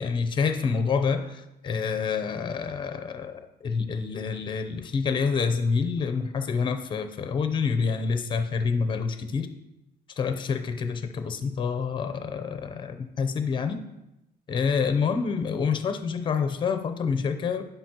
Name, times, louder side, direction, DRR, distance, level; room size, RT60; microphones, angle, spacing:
voice 1, 0.0-9.5 10.2-13.8 14.5-17.7, left 5 dB, 30° left, 9 dB, 0.6 m, -27 dB
10.5 x 5.4 x 2.9 m, 0.91 s
cardioid pair, 160°, 17 cm